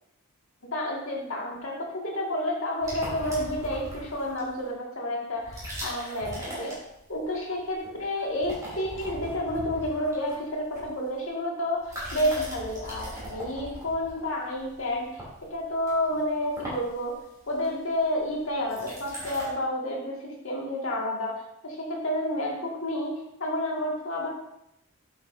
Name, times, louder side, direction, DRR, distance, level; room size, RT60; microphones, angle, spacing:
voice 1, 0.7-6.8 7.1-15.2 15.5-17.1 17.5-21.3 21.6-24.3, left 1 dB, 70° left, -2 dB, 2.1 m, -30 dB
sound 1, 2.8-4.6 5.4-7.3 7.6-8.0 8.3-11.3 11.8-19.5, equal, 15° right, 3.0 m, -39 dB
8.2 x 7.9 x 2.7 m, 0.81 s
head